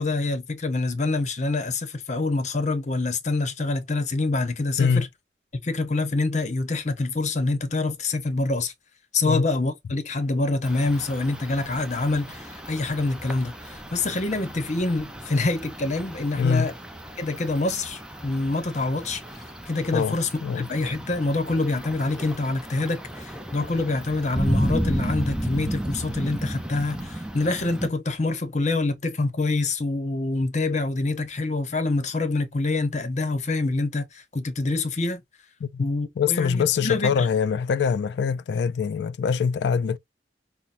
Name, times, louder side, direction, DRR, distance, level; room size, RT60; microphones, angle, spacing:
voice 1, 0.0-5.1 5.6-8.7 9.1-16.7 17.2-20.3 20.6-35.2 35.8-37.3, left 2 dB, 40° left, 0.7 m, -26 dB
sound 1, 10.6-27.9, right 1 dB, 5° right, 0.4 m, -33 dB
voice 2, 16.4-16.7 19.9-20.7 35.6-35.9 36.2-40.0, left 6 dB, 70° left, 0.3 m, -24 dB
5.6 x 2.0 x 2.5 m
head